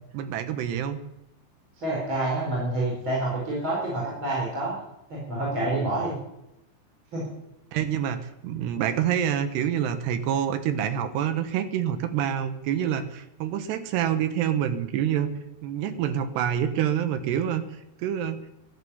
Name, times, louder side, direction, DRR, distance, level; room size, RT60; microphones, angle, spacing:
voice 1, 0.1-1.0 7.7-15.3 15.6-17.6 18.0-18.4, right 9 dB, 70° right, 10 dB, 2.8 m, -27 dB
voice 2, 1.8-4.7 5.1-6.2 7.1-7.2, right 2 dB, 25° right, -4 dB, 4.6 m, -28 dB
14.0 x 11.5 x 7.1 m, 0.87 s
omnidirectional pair, 5.8 m